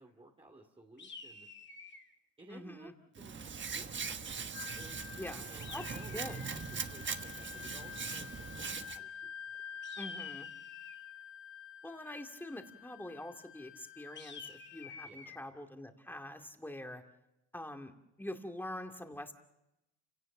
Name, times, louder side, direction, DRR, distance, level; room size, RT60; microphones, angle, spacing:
voice 1, 0.0-1.5 2.4-3.4 3.7-4.5 4.7-9.6 15.0-15.4, right 2 dB, 20° right, 0 dB, 2.4 m, -56 dB
sound 1, 1.0-2.1 5.6-6.6 9.8-11.1 14.2-15.4, left 5 dB, 40° left, 2.2 m, -49 dB
voice 2, 2.5-2.9 5.2-5.5 5.7-5.8 6.1-6.4 10.0-10.5 11.8-17.0 17.5-17.9 18.2-19.3, left 1 dB, 5° left, 4 dB, 2.3 m, -44 dB
Hands, 3.2-9.0, right 6 dB, 40° right, 1.3 m, -41 dB
Wind instrument woodwind instrument, 4.5-14.9, left 8 dB, 90° left, 1.8 m, -49 dB
29.0 x 17.5 x 7.3 m, 0.91 s
cardioid pair, 90°, 30 cm